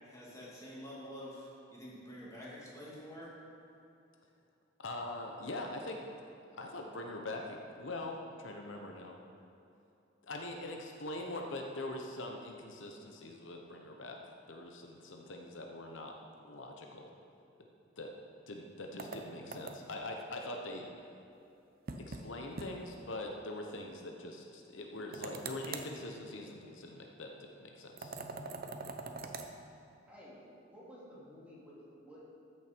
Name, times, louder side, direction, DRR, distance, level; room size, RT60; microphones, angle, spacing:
voice 1, 0.0-3.3, equal, 15° left, -6 dB, 2.5 m, -48 dB
voice 2, 4.8-6.0 6.5-9.2 10.2-14.2 14.5-17.1 18.0-18.1 18.5-20.9 22.0-28.2, left 2 dB, 80° left, 2 dB, 0.9 m, -43 dB
sound 1, 19.0-20.0 21.9-22.3 22.6-22.7 23.0-23.1 25.1-25.9 28.0-29.5, right 3 dB, 50° right, 0.7 m, -43 dB
voice 3, 30.1-30.4 30.7-32.3, equal, 5° right, -8 dB, 2.7 m, -53 dB
13.5 x 6.6 x 4.5 m, 2.7 s
head